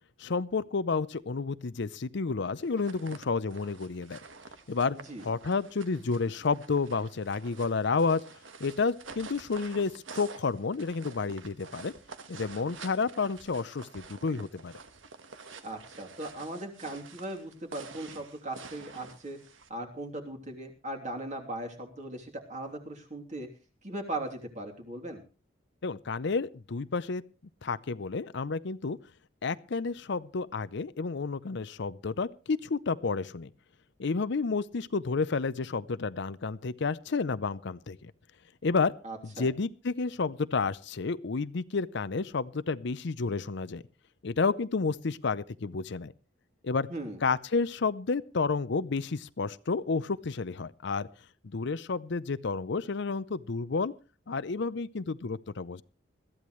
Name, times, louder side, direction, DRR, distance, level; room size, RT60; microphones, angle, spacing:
voice 1, 0.2-4.2 4.7-5.0 5.2-8.2 8.6-11.9 12.3-14.7 25.8-27.2 27.6-29.0 29.4-33.5 34.0-38.1 38.6-38.9 39.4-43.8 44.2-46.1 46.6-46.9 47.2-51.1 51.4-53.9 54.3-55.8, left 4 dB, 65° left, 16 dB, 0.6 m, -30 dB
sound 1, 2.6-19.7, right 4 dB, 85° right, 1.5 m, -49 dB
voice 2, 15.6-19.4 19.7-23.5 23.8-25.2 39.0-39.5 46.9-47.2, right 1 dB, 40° right, 2 dB, 3.1 m, -38 dB
21.0 x 14.0 x 3.2 m, 0.34 s
head